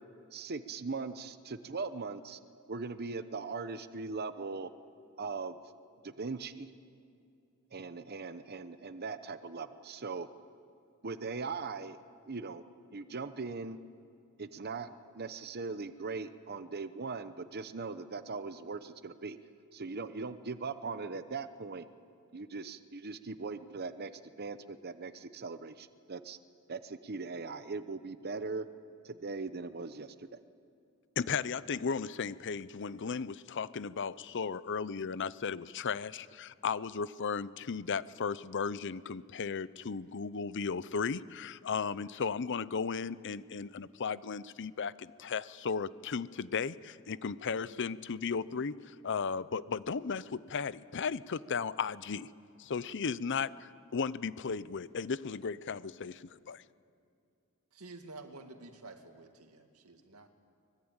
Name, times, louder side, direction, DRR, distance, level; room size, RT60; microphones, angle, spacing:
voice 1, 0.3-2.4 2.7-4.7 5.2-5.6 6.0-6.7 7.7-10.3 11.0-12.0 12.3-12.6 12.9-13.8 14.4-19.4 19.7-21.9 22.3-24.1 24.4-26.4 26.7-28.6 29.0-30.1, right 4 dB, 45° right, 11 dB, 0.9 m, -40 dB
voice 2, 31.2-52.3 52.6-56.6, left 5 dB, 55° left, 17 dB, 0.6 m, -35 dB
voice 3, 57.7-60.3, right 3 dB, 85° right, 6 dB, 2.2 m, -50 dB
24.0 x 20.5 x 8.9 m, 2.5 s
head